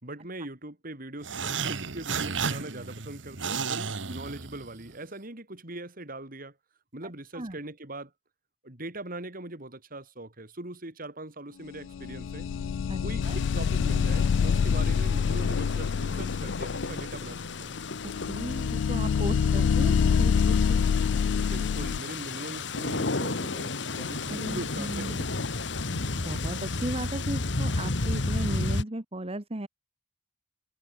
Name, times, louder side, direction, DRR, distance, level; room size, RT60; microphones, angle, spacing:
voice 1, 0.0-6.6 6.9-8.1 8.6-12.5 13.0-17.8 19.6-19.7 21.3-25.3, right 2 dB, 50° right, 4.1 m, -41 dB
sound 1, 1.2-4.9, right 5 dB, 85° right, 1.6 m, -33 dB
voice 2, 7.0-7.6 12.9-13.4 18.0-20.8 24.3-25.5 25.9-29.7, right 1 dB, 35° right, 1.6 m, -36 dB
sound 2, 11.9-22.0, left 6 dB, 85° left, 0.3 m, -26 dB
sound 3, 13.2-28.8, left 3 dB, 70° left, 1.5 m, -33 dB
head